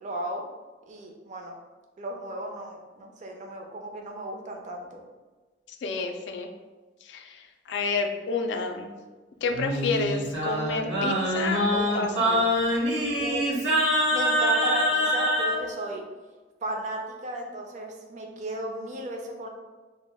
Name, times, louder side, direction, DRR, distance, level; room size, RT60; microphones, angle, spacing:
voice 1, 0.0-0.5 0.9-1.6 2.0-5.0 13.2-13.5 14.1-16.1 16.6-19.5, right 1 dB, 45° right, 2 dB, 0.4 m, -35 dB
voice 2, 5.8-6.5 7.1-7.4 7.7-8.9 9.4-12.5, left 4 dB, 80° left, 5 dB, 0.3 m, -30 dB
Singing, 9.5-15.6, equal, 70° right, 0.8 m, -25 dB
2.2 x 2.0 x 3.4 m, 1.3 s
head